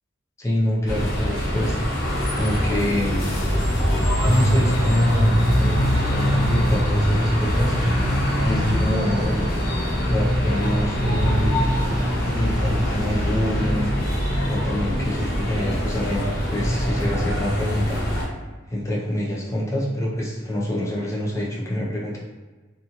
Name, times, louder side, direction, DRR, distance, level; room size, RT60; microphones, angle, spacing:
voice 1, 0.4-1.8 2.3-3.4 4.2-7.7 8.4-9.5 10.0-11.7 12.3-13.9 14.4-18.0 18.7-22.2, left 1 dB, 15° left, -4 dB, 0.5 m, -25 dB
sound 1, 0.9-18.2, equal, 50° left, 0.7 m, -22 dB
2.7 x 2.4 x 2.8 m, 1.3 s
head